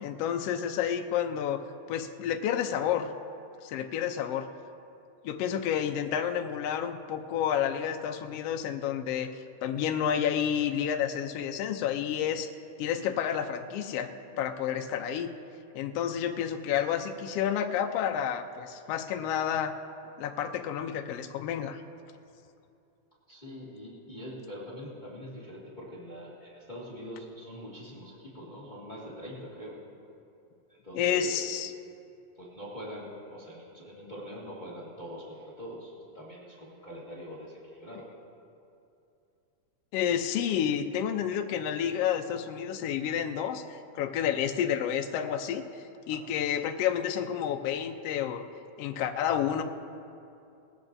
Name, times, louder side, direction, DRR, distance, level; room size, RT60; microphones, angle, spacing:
voice 1, 0.0-1.6 1.9-3.1 3.6-4.5 5.2-12.5 12.8-14.1 14.4-15.3 15.7-19.7 20.2-21.8 30.9-31.7 39.9-48.4 48.8-49.6, left 9 dB, 75° left, 6 dB, 1.5 m, -30 dB
voice 2, 23.3-29.8 30.7-31.4 32.4-38.1 40.0-40.1 46.1-46.2, equal, 15° left, -6 dB, 1.9 m, -43 dB
20.5 x 16.0 x 2.7 m, 2.7 s
omnidirectional pair, 3.4 m